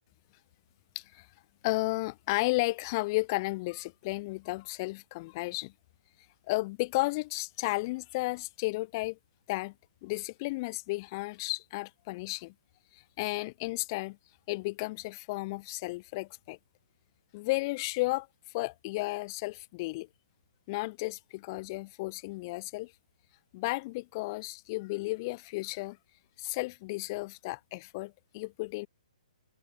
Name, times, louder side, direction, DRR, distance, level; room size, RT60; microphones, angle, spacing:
voice 1, 1.0-1.3 1.6-5.7 6.5-9.2 9.5-9.7 10.0-12.5 12.9-14.2 14.5-16.6 17.3-18.3 18.5-20.1 20.7-22.9 23.5-26.0 26.4-28.9, left 23 dB, 35° left, 2.2 m, -33 dB
hypercardioid pair, 150°, 4 cm